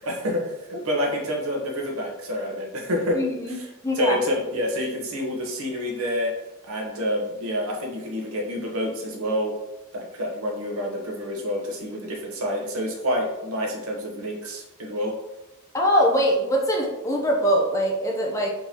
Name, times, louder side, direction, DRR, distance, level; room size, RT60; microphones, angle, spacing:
voice 1, 0.0-3.2 3.5-3.7 3.9-6.3 6.6-9.5 9.9-15.1, equal, 85° right, 0 dB, 1.0 m, -28 dB
voice 2, 3.1-3.6 3.8-4.2 15.7-18.5, equal, 15° left, 0 dB, 0.5 m, -22 dB
4.4 x 3.8 x 2.8 m, 0.97 s
head